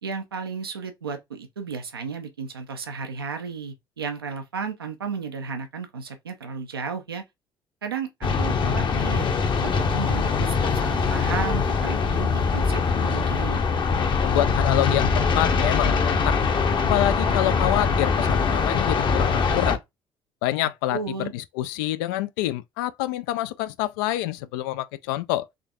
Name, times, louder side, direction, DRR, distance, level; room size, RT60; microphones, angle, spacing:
voice 1, 0.0-7.2 7.8-8.1 8.4-9.3 9.6-13.6 20.9-21.3, right 5 dB, 85° right, 0.6 m, -33 dB
sound 1, 8.2-19.8, left 5 dB, 40° left, 0.8 m, -22 dB
voice 2, 14.2-16.5 16.8-19.8 20.4-25.5, left 14 dB, 70° left, 0.4 m, -27 dB
3.8 x 3.3 x 2.3 m
figure-of-eight pair, 50°, 12 cm